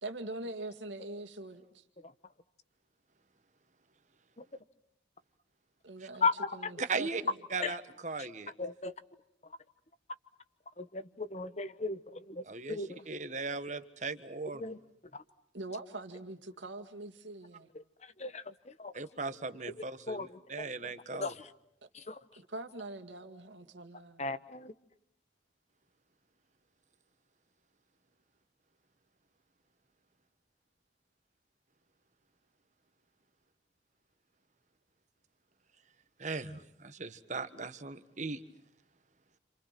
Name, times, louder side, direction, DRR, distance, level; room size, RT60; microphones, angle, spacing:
voice 1, 0.0-1.8 5.8-7.4 12.9-13.1 15.5-17.7 22.4-24.2, right 2 dB, 85° right, 2.2 m, -43 dB
voice 2, 6.2-6.7 7.6-7.8 8.6-8.9 10.8-13.0 14.6-14.8 15.1-15.2 18.2-18.9 19.8-20.6 21.2-21.3 21.9-22.2 24.2-24.7, left 4 dB, 35° left, 1.1 m, -36 dB
voice 3, 6.8-7.2 7.5-8.5 12.4-12.8 13.1-14.6 18.9-21.3 36.2-38.4, right 4 dB, 40° right, 1.5 m, -38 dB
30.0 x 27.5 x 6.0 m
head